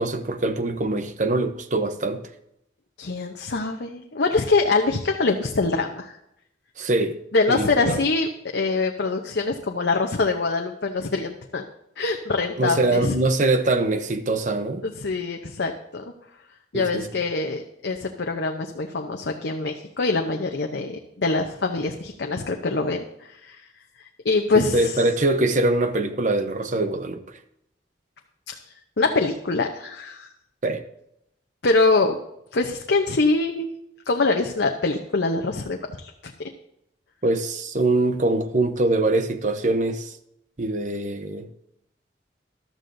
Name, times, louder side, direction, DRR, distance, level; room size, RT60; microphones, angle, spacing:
voice 1, 0.0-2.2 6.8-7.2 7.5-8.0 12.6-14.9 16.7-17.2 24.5-27.2 30.6-30.8 37.2-40.2 40.6-41.5, right 2 dB, 45° right, 0.8 m, -23 dB
voice 2, 3.0-6.2 7.3-11.6 12.0-13.1 14.8-16.0 16.7-23.6 24.2-25.0 28.5-28.6 29.0-30.3 31.6-32.2 32.5-33.7 34.1-36.1 36.4-36.5, left 3 dB, 80° left, 0.8 m, -24 dB
14.5 x 12.0 x 2.7 m
head